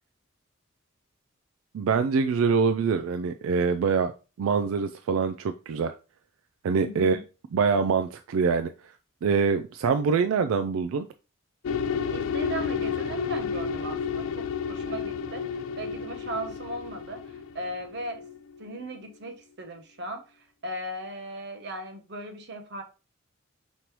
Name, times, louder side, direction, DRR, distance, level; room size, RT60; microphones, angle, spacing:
voice 1, 1.7-4.1 4.4-5.9 6.6-7.2 7.5-8.9 9.2-11.1, right 5 dB, 85° right, 9 dB, 0.3 m, -24 dB
voice 2, 6.8-7.2 12.1-15.4 15.8-18.2 18.6-20.2 20.6-22.8, right 1 dB, 55° right, 6 dB, 0.8 m, -37 dB
sound 1, 11.6-18.7, left 6 dB, 75° left, 0.4 m, -31 dB
5.2 x 3.1 x 3.0 m, 0.31 s
head